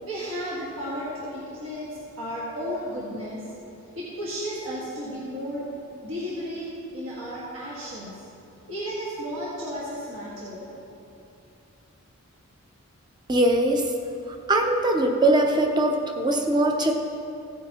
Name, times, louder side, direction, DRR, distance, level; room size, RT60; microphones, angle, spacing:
voice 1, 0.0-3.4 3.9-5.7 6.0-6.7 6.9-8.1 8.7-10.7, equal, 65° right, -8 dB, 1.7 m, -33 dB
voice 2, 13.3-13.9 14.3-16.9, right 1 dB, 20° right, 3 dB, 0.6 m, -21 dB
15.0 x 9.0 x 3.0 m, 2.8 s
head